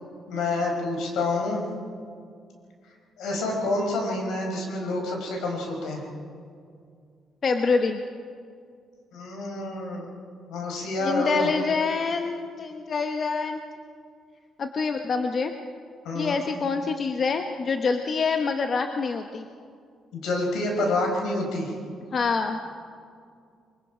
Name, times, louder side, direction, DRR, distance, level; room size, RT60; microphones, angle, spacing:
voice 1, 0.3-1.6 3.2-6.0 9.1-10.1 10.5-11.5 16.0-16.4 20.1-21.7, left 2 dB, 85° left, 1 dB, 4.9 m, -28 dB
voice 2, 7.4-8.0 11.0-13.6 14.6-15.5 16.1-19.4 22.1-22.6, left 4 dB, 45° left, 6 dB, 1.0 m, -26 dB
23.0 x 23.0 x 5.1 m, 2.3 s
cardioid pair, 90°, 0 cm